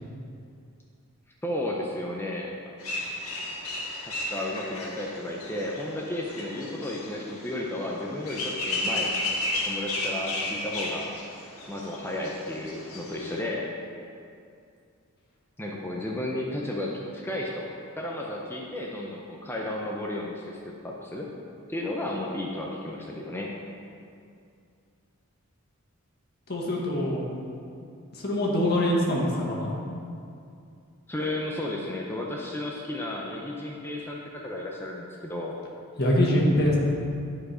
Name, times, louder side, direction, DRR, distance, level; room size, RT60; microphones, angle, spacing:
voice 1, 1.4-2.5 4.0-9.1 9.7-11.1 11.7-13.7 15.6-17.7 18.0-21.3 21.7-23.5 31.1-35.6, left 1 dB, 10° left, -2 dB, 0.6 m, -33 dB
sound 1, 2.8-13.4, left 2 dB, 75° left, 1.7 m, -34 dB
voice 2, 26.5-27.3 28.1-29.7 36.0-36.8, left 1 dB, 45° left, -3 dB, 1.6 m, -24 dB
10.5 x 4.9 x 4.9 m, 2.4 s
head